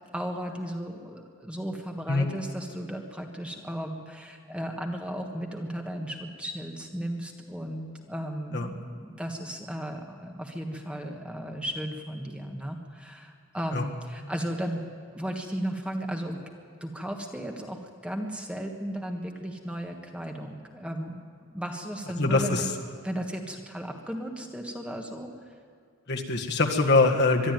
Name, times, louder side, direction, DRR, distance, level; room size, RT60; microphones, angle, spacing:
voice 1, 0.1-14.8 15.1-16.4 16.8-22.7 23.0-25.3, equal, 5° right, 2 dB, 1.4 m, -35 dB
voice 2, 22.2-22.7 26.1-27.5, left 3 dB, 50° left, 2 dB, 1.7 m, -23 dB
22.5 x 12.5 x 9.2 m, 2.2 s
head